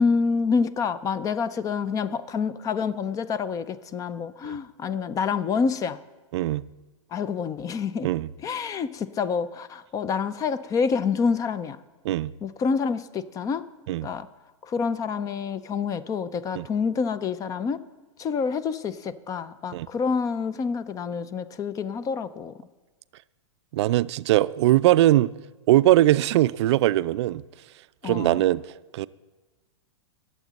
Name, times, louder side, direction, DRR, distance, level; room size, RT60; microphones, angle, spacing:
voice 1, 0.0-6.0 7.1-8.1 8.4-11.8 12.4-13.7 14.0-14.3 14.6-17.8 18.2-22.5 28.0-28.4, left 5 dB, 20° left, 0.4 m, -27 dB
voice 2, 6.3-6.6 8.0-8.3 12.0-12.3 13.9-14.1 16.5-16.7 19.7-19.9 23.7-25.3 25.7-27.4 28.0-28.6 28.9-29.1, right 15 dB, 60° right, 0.4 m, -21 dB
20.5 x 7.4 x 4.1 m
hypercardioid pair, 120°, 16 cm